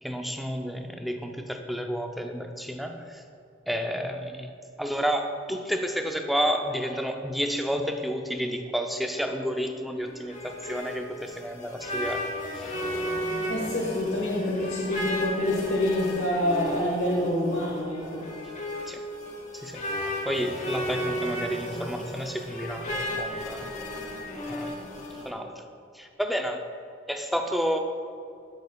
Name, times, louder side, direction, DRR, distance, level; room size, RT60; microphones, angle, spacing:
voice 1, 0.0-3.2 3.7-4.5 4.8-12.3 12.5-12.7 18.9-19.0 19.5-19.8 20.3-22.9 23.2-23.7 24.5-24.7 25.2-25.6 25.9-26.6 27.1-27.8, equal, ahead, 4 dB, 0.4 m, -30 dB
sound 1, 10.0-25.3, equal, 40° left, 1.1 m, -34 dB
voice 2, 13.5-18.2, left 1 dB, 75° left, -5 dB, 1.4 m, -27 dB
13.0 x 6.3 x 2.3 m, 2.5 s
head